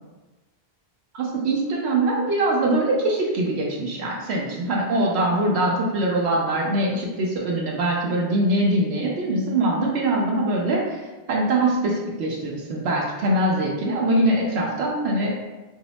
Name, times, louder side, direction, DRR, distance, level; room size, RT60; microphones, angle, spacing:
voice 1, 1.1-15.3, right 1 dB, 80° right, -2 dB, 0.8 m, -23 dB
2.7 x 2.0 x 3.9 m, 1.2 s
omnidirectional pair, 1.1 m